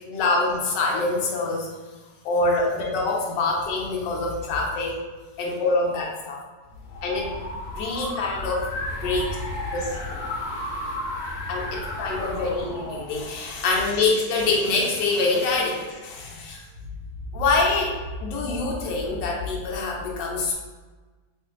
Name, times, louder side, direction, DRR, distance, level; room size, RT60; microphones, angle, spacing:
voice 1, 0.1-1.7 2.2-5.0 5.4-6.4 7.0-7.3 7.7-8.7 9.0-9.4 9.7-10.2 11.5-16.6 17.3-20.5, left 3 dB, 85° left, -1 dB, 1.3 m, -25 dB
sound 1, 6.7-13.9, left 1 dB, 65° left, 1.1 m, -33 dB
3.2 x 2.5 x 3.6 m, 1.3 s
omnidirectional pair, 1.9 m